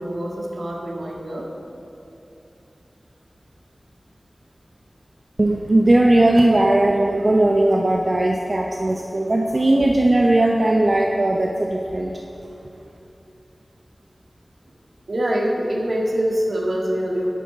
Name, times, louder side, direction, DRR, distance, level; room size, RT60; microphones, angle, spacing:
voice 1, 0.0-1.5 15.1-17.3, equal, 75° right, -2 dB, 1.8 m, -24 dB
voice 2, 5.4-12.1, right 1 dB, 50° right, 0 dB, 0.8 m, -18 dB
10.0 x 9.3 x 5.0 m, 2.8 s
wide cardioid pair, 50°, 0 cm